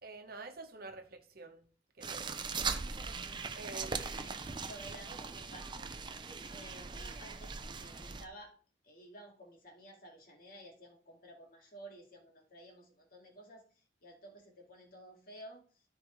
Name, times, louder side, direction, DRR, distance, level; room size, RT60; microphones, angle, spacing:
voice 1, 0.0-1.6 2.0-2.4 3.5-4.1, right 3 dB, 55° right, 5 dB, 1.2 m, -48 dB
sound 1, 2.0-8.2, right 5 dB, 25° right, 0.6 m, -40 dB
voice 2, 3.8-5.9 6.5-8.5 8.8-15.8, right 1 dB, 55° left, 1 dB, 2.2 m, -53 dB
13.5 x 4.7 x 3.2 m, 0.42 s
head